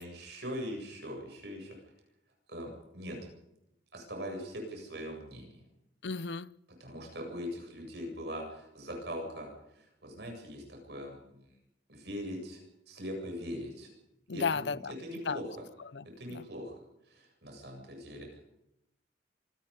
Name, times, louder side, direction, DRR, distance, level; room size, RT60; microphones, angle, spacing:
voice 1, 0.0-1.8 2.5-3.2 3.9-5.6 6.8-11.5 11.9-12.6 12.9-13.9 14.3-15.5 16.2-16.8 17.1-18.4, equal, 70° right, 7.8 m, -41 dB
voice 2, 6.0-6.5 14.3-14.9 15.2-15.4 15.9-16.0 16.3-16.4, left 5 dB, 80° left, 0.7 m, -33 dB
26.5 x 19.5 x 5.5 m
head